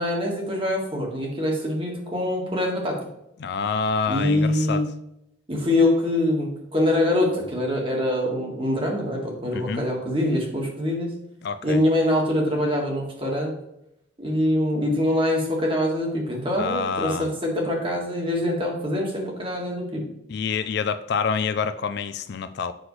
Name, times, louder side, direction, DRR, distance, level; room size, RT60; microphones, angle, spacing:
voice 1, 0.0-2.9 4.1-4.8 5.5-11.1 11.6-13.5 14.2-20.0, left 1 dB, 25° right, -1 dB, 1.7 m, -24 dB
voice 2, 3.4-4.8 9.5-9.8 11.4-11.8 16.6-17.3 20.3-22.7, left 5 dB, 55° left, 11 dB, 0.4 m, -27 dB
7.8 x 6.0 x 3.2 m, 0.81 s
head